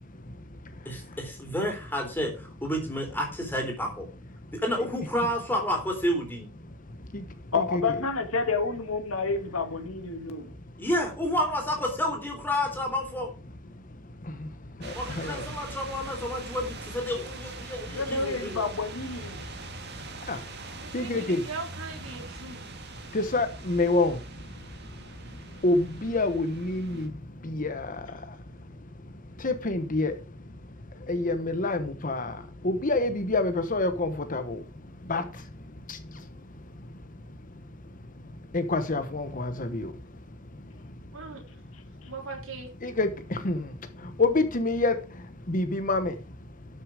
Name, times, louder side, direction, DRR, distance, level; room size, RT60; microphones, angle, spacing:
voice 1, 0.9-4.1 4.5-6.5 10.8-13.3 14.9-18.6, left 1 dB, 10° left, 3.7 m, -30 dB
voice 2, 7.5-10.5 17.9-19.4 41.7-41.8, left 4 dB, 85° left, 2.0 m, -29 dB
voice 3, 14.8-15.4 20.3-20.4 20.9-21.4 23.1-24.2 25.6-27.1 27.4-27.9 29.4-30.1 31.1-32.3 32.6-34.6 35.1-35.2 38.5-39.9 42.8-43.6 44.2-45.0 45.5-46.1, left 2 dB, 40° left, 1.1 m, -26 dB
sound 1, 14.8-27.1, right 3 dB, 50° right, 2.1 m, -43 dB
voice 4, 20.7-22.7 41.1-41.6 42.1-42.7, right 4 dB, 65° right, 3.7 m, -40 dB
12.5 x 6.7 x 5.0 m
head